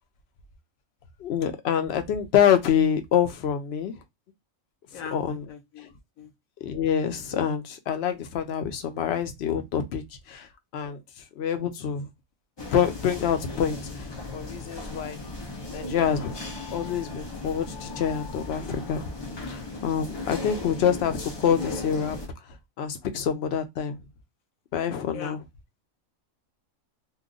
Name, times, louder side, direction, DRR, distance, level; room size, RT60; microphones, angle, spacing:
voice 1, 1.2-3.9 5.1-5.4 6.6-10.5 10.7-11.0 11.4-12.1 12.7-15.2 15.7-16.3 16.7-19.0 19.5-22.2 22.8-24.0 24.7-25.4, left 8 dB, 60° left, 0.8 m, -26 dB
voice 2, 4.9-6.3 25.1-25.4, left 7 dB, 75° left, 1.1 m, -41 dB
sound 1, 12.6-22.3, left 3 dB, 40° left, 0.3 m, -37 dB
2.9 x 2.2 x 3.7 m
omnidirectional pair, 1.5 m